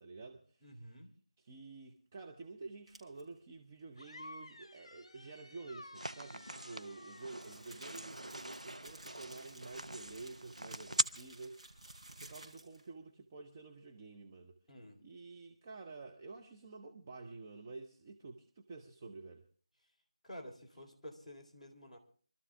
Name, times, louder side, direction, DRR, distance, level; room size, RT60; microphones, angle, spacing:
voice 1, 0.0-0.7 1.4-14.6 15.0-19.5, right 3 dB, 20° right, 0.8 m, -50 dB
voice 2, 0.6-1.1 14.7-15.0 20.2-22.0, equal, 5° left, 2.7 m, -51 dB
sound 1, 2.9-3.2 6.3-12.9, right 2 dB, 60° right, 5.2 m, -56 dB
sound 2, 4.0-8.3, left 2 dB, 50° left, 1.3 m, -54 dB
sound 3, 5.9-11.0, right 1 dB, 90° right, 0.9 m, -41 dB
25.0 x 13.0 x 3.4 m
figure-of-eight pair, 165°, 4 cm